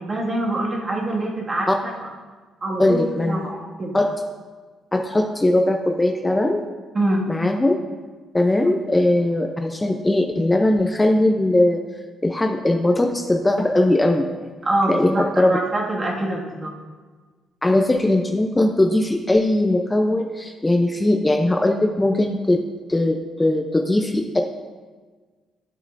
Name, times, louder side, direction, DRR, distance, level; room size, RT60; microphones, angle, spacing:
voice 1, 0.0-2.1 2.6-4.0 6.9-7.3 8.6-8.7 14.6-16.7, right 1 dB, 35° right, -2 dB, 1.9 m, -25 dB
voice 2, 2.8-3.5 3.9-4.1 4.9-6.7 7.3-7.8 8.3-11.8 12.2-14.5 14.9-15.6 17.6-22.6 22.9-24.4, left 1 dB, 15° left, 4 dB, 0.6 m, -20 dB
11.5 x 7.2 x 2.6 m, 1.4 s
cardioid pair, 90°, 0 cm